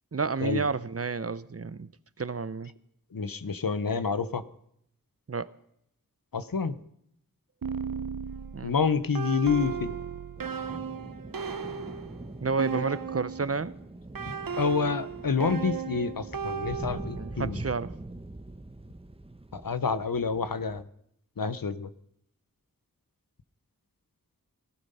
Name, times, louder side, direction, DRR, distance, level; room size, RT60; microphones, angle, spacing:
voice 1, 0.1-1.9 2.2-2.7 5.3-5.5 8.5-8.7 12.4-13.7 17.2-17.9, right 4 dB, 45° right, 0.7 m, -30 dB
voice 2, 3.1-4.4 6.3-6.8 8.6-9.9 12.7-12.8 14.6-17.6 19.5-20.8 21.4-21.9, left 5 dB, 85° left, 0.9 m, -28 dB
sound 1, 7.6-13.6 14.1-17.4, right 7 dB, 85° right, 0.7 m, -35 dB
sound 2, 10.4-20.8, right 2 dB, 15° right, 1.0 m, -43 dB
18.0 x 12.5 x 5.5 m
wide cardioid pair, 45°, 33 cm